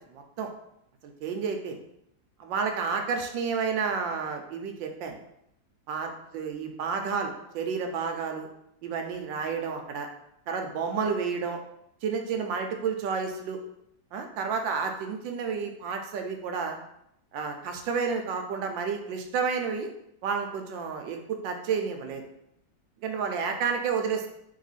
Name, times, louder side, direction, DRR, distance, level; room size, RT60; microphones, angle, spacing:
voice 1, 0.1-0.5 1.0-1.8 2.4-5.2 5.9-8.5 8.8-10.1 10.5-11.6 12.0-13.6 14.1-16.8 17.3-19.9 20.2-22.2 23.0-24.3, right 5 dB, 80° right, 4 dB, 1.3 m, -30 dB
3.7 x 3.3 x 4.0 m, 0.77 s
omnidirectional pair, 2.1 m